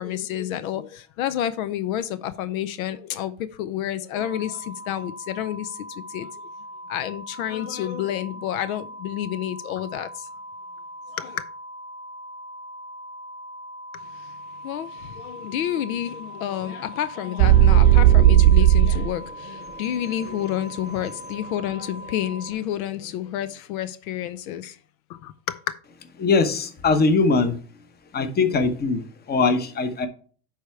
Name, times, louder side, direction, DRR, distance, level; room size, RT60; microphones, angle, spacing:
voice 1, 0.0-6.3 6.9-10.3 11.1-11.4 13.9-14.1 14.6-24.8 25.1-25.6, left 11 dB, 70° left, 0.7 m, -29 dB
sound 1, 4.2-22.5, equal, 15° right, 0.8 m, -40 dB
sound 2, 17.4-19.1, right 11 dB, 70° right, 0.9 m, -14 dB
voice 2, 26.2-27.6 28.1-30.1, left 4 dB, 20° left, 0.9 m, -21 dB
10.0 x 3.5 x 4.5 m
supercardioid pair, 115°, 43 cm